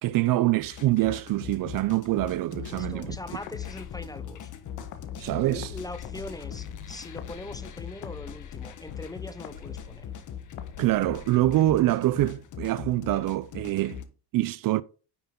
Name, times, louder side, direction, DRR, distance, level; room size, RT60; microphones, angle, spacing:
voice 1, 0.0-3.2 5.2-5.7 10.8-14.0 14.3-14.8, right 16 dB, 55° right, 0.5 m, -25 dB
sound 1, 0.6-14.0, left 8 dB, 45° left, 1.3 m, -41 dB
sound 2, 2.7-11.7, left 9 dB, 85° left, 1.4 m, -46 dB
voice 2, 2.7-4.5 5.4-10.1, left 2 dB, 10° left, 0.8 m, -41 dB
10.0 x 5.5 x 3.8 m
cardioid pair, 105°, 42 cm